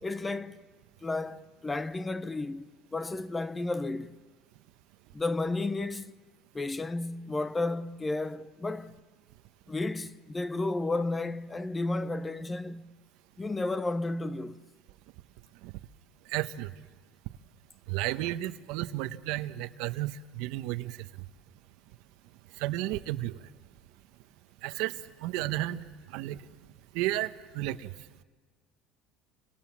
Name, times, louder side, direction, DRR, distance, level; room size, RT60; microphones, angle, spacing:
voice 1, 0.0-0.6 1.0-2.6 2.9-4.2 5.1-6.2 6.5-8.9 9.7-12.9 13.4-14.6, left 2 dB, 15° left, 0.8 m, -32 dB
voice 2, 16.3-16.7 17.9-20.9 22.6-23.3 24.6-24.9 25.2-25.8 26.1-26.4 26.9-27.9, right 15 dB, 75° right, 1.0 m, -32 dB
29.0 x 26.0 x 7.4 m
cardioid pair, 135°, 0 cm